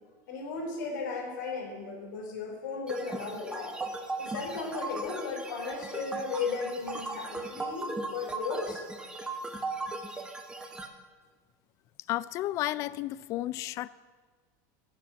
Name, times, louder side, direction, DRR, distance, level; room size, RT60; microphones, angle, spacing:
voice 1, 0.3-3.8 4.2-8.8, left 4 dB, 85° left, 1 dB, 3.9 m, -35 dB
sound 1, 2.9-10.9, right 2 dB, 10° right, 0.9 m, -37 dB
voice 2, 12.1-13.9, left 15 dB, 30° left, 19 dB, 0.3 m, -32 dB
14.5 x 7.6 x 8.2 m, 1.5 s
supercardioid pair, 170°, 10 cm